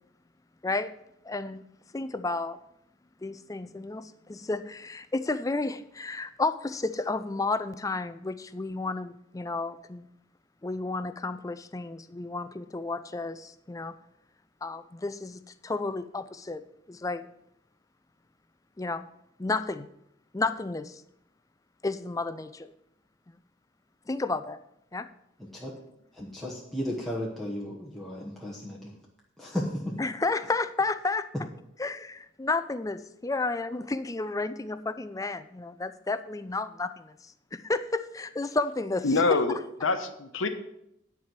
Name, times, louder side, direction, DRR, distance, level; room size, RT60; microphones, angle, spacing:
voice 1, 0.6-0.9 1.2-1.6 1.9-2.6 3.2-10.1 10.6-14.0 14.6-16.6 16.9-17.3 18.8-19.1 19.4-19.9 20.3-21.0 21.8-22.7 24.1-24.6 24.9-25.1 30.0-31.3 31.8-39.6, left 3 dB, 15° left, 12 dB, 0.4 m, -32 dB
voice 2, 26.1-29.0 29.4-29.9, equal, ahead, -5 dB, 1.1 m, -34 dB
voice 3, 39.0-39.6 39.8-40.5, left 3 dB, 80° left, 8 dB, 0.9 m, -25 dB
10.0 x 4.7 x 7.5 m, 0.78 s
head